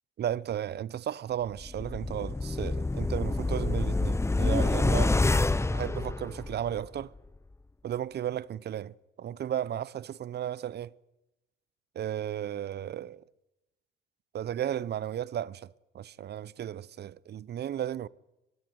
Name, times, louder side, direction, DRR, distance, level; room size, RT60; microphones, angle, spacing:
voice 1, 0.2-5.2 5.7-7.1 7.8-10.9 11.9-13.2 14.3-18.1, right 10 dB, 55° right, 0.7 m, -34 dB
sound 1, 1.6-6.8 7.2-7.3, left 2 dB, 15° left, 0.8 m, -27 dB
20.0 x 16.0 x 9.4 m
cardioid pair, 90°, 20 cm